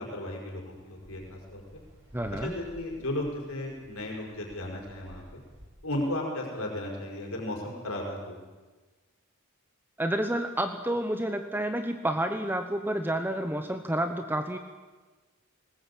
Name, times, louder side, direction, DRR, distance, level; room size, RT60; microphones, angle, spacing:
voice 1, 0.0-1.6 2.3-5.4 5.8-8.4, left 1 dB, 75° left, 0 dB, 5.4 m, -35 dB
sound 1, 0.7-5.7, equal, 55° right, 6.9 m, -53 dB
voice 2, 2.1-2.5 10.0-14.6, right 1 dB, 10° right, 7 dB, 0.9 m, -29 dB
20.0 x 19.5 x 8.8 m, 1.3 s
head